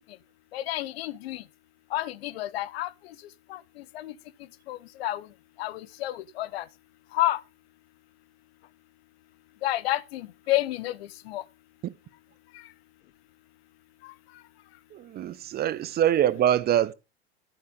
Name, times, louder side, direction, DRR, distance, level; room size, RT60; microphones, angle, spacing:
voice 1, 0.5-1.4 1.9-2.9 3.5-3.6 3.9-4.1 4.7-5.3 5.6-6.6 7.1-7.4 9.6-11.4 14.0-14.1, left 15 dB, 65° left, 0.9 m, -30 dB
voice 2, 14.9-16.9, right 11 dB, 30° right, 0.8 m, -24 dB
11.5 x 7.6 x 5.1 m
hypercardioid pair, 95°, 33 cm